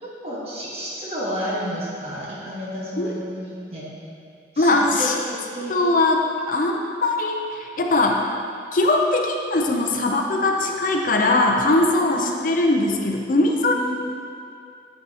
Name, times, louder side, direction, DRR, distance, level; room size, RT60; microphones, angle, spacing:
voice 1, 0.0-3.9 4.5-5.8 10.0-10.2 11.9-12.4 13.7-14.0, equal, 30° right, -7 dB, 1.3 m, -31 dB
voice 2, 4.6-5.1 5.7-6.2 6.5-8.2 8.7-13.8, left 2 dB, 45° left, 1 dB, 0.5 m, -20 dB
7.5 x 5.6 x 2.8 m, 2.5 s
head